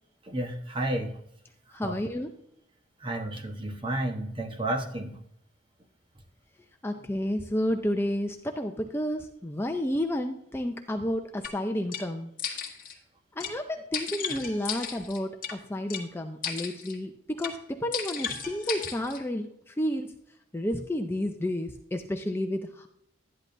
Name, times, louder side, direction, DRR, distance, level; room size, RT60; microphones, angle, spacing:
voice 1, 0.2-1.2 1.7-2.0 3.0-5.2, right 1 dB, 25° right, 4 dB, 1.1 m, -32 dB
voice 2, 1.7-2.3 6.8-12.6 13.4-20.1 20.5-22.9, left 1 dB, 10° left, 5 dB, 0.6 m, -31 dB
sound 1, 11.4-11.5 11.9-12.0 12.4-13.0 13.4-13.5 13.9-15.5 15.9-16.0 16.4-17.0 17.4-17.6 17.9-19.2, left 7 dB, 45° left, 1.5 m, -35 dB
12.0 x 10.5 x 2.6 m, 0.74 s
head